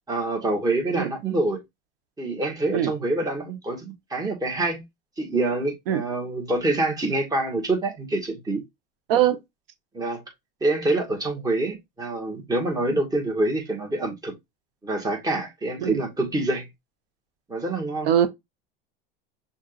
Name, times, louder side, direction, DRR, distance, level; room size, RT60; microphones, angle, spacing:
voice 1, 0.1-1.6 2.2-4.8 5.2-8.6 9.9-10.2 10.6-14.3 14.8-16.7 17.5-18.1, right 2 dB, 15° right, 1.8 m, -26 dB
voice 2, 9.1-9.4 15.8-16.0 18.0-18.3, right 10 dB, 70° right, 1.1 m, -21 dB
6.2 x 2.8 x 2.5 m
hypercardioid pair, 100°, 29 cm